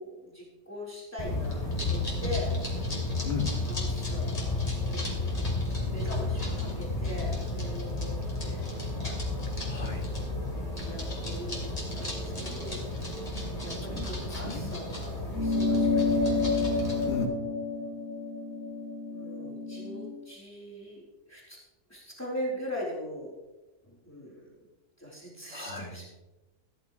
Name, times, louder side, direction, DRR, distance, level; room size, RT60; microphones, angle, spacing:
voice 1, 0.0-2.6 3.7-5.5 5.9-8.7 8.9-9.2 10.8-12.9 13.6-16.5 19.1-21.6 21.9-23.4 23.8-24.5 25.0-26.1, left 1 dB, 15° left, -5 dB, 4.0 m, -41 dB
sound 1, 1.2-17.2, left 2 dB, 30° left, 3.1 m, -32 dB
voice 2, 3.2-3.5 9.7-10.1 13.9-14.8 17.1-17.4 25.5-25.9, left 4 dB, 60° left, 1 dB, 2.5 m, -36 dB
sound 2, 15.3-20.1, left 3 dB, 20° right, 3.8 m, -29 dB
15.0 x 14.0 x 3.1 m, 1.1 s
omnidirectional pair, 1.2 m